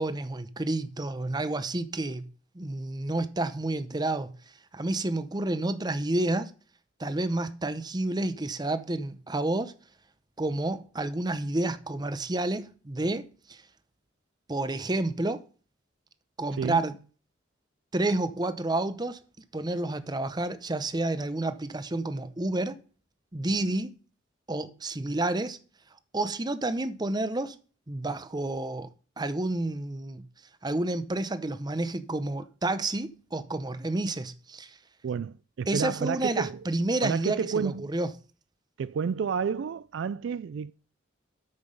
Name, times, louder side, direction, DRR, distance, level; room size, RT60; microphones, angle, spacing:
voice 1, 0.0-2.3 2.5-4.3 4.7-6.5 7.0-9.7 10.4-13.6 14.5-15.4 16.4-17.0 17.9-19.2 19.5-22.8 23.3-24.0 24.5-25.6 26.1-27.6 27.9-28.9 29.2-30.3 30.6-34.8 35.7-38.1, right 2 dB, 20° right, 0.7 m, -30 dB
voice 2, 35.0-36.6 37.0-37.9 38.8-40.7, right 6 dB, 65° right, 0.3 m, -30 dB
8.7 x 6.0 x 5.3 m
head